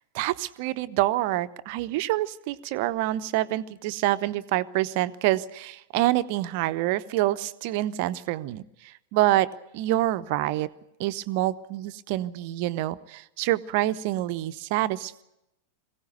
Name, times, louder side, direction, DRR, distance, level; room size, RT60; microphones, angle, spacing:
voice 1, 0.1-10.7 11.0-15.2, right 15 dB, 45° right, 13 dB, 0.8 m, -27 dB
21.5 x 17.0 x 9.1 m, 0.88 s
figure-of-eight pair, 90°, 0 cm